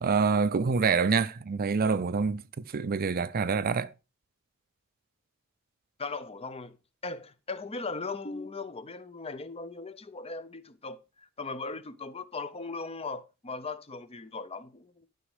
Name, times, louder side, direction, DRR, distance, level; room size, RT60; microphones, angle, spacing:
voice 1, 0.0-2.4 2.7-3.9, right 5 dB, 45° right, 0.5 m, -26 dB
voice 2, 6.0-6.8 7.0-15.1, left 3 dB, 30° left, 0.7 m, -38 dB
12.0 x 5.2 x 4.8 m
head